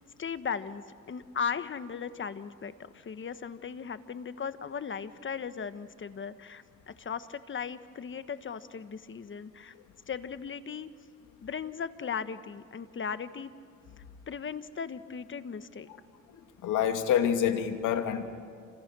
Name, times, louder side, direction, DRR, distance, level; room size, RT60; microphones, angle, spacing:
voice 1, 0.2-9.7 10.1-10.9 11.4-13.5 14.3-15.9, left 6 dB, 40° left, 11 dB, 1.3 m, -37 dB
voice 2, 16.3-18.3, left 9 dB, 85° left, 5 dB, 2.6 m, -27 dB
28.5 x 26.5 x 6.2 m, 2.3 s
cardioid pair, 90°, 30 cm